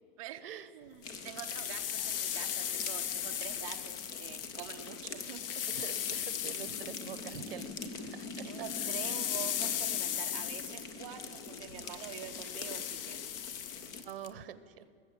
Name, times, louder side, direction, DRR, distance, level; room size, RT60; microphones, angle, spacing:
voice 1, 0.2-0.5 0.7-5.6 8.4-13.5, right 12 dB, 35° right, 5 dB, 0.6 m, -46 dB
sound 1, 1.0-14.0, left 4 dB, 15° left, 0.4 m, -44 dB
sound 2, 1.1-7.9 8.2-14.3, left 10 dB, 70° left, 0.9 m, -37 dB
voice 2, 5.7-8.5 14.0-14.9, right 9 dB, 75° right, 14 dB, 1.0 m, -45 dB
20.5 x 7.9 x 7.3 m, 2.3 s
supercardioid pair, 165°, 29 cm